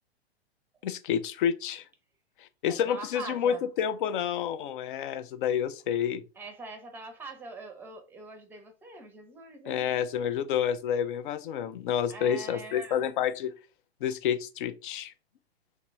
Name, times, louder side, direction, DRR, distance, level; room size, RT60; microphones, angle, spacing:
voice 1, 0.8-1.8 2.4-6.2 9.7-13.5 14.0-15.1, left 9 dB, 50° left, 0.5 m, -29 dB
voice 2, 2.7-3.6 6.4-9.9 12.1-13.1, right 3 dB, 5° right, 0.7 m, -43 dB
3.0 x 3.0 x 3.4 m
figure-of-eight pair, 105°, 32 cm